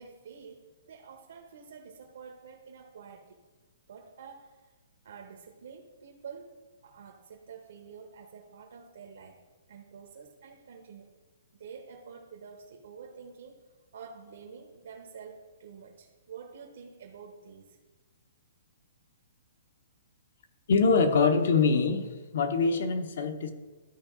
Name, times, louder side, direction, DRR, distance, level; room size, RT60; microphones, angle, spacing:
voice 1, 0.0-3.4 3.9-4.7 5.0-6.5 6.8-9.4 9.7-11.1 11.6-13.6 13.9-17.8, right 6 dB, 65° right, 1 dB, 1.0 m, -48 dB
voice 2, 20.7-22.1 22.3-23.5, left 4 dB, 55° left, 8 dB, 0.9 m, -24 dB
13.0 x 4.7 x 3.7 m, 1.3 s
hypercardioid pair, 170°, 0 cm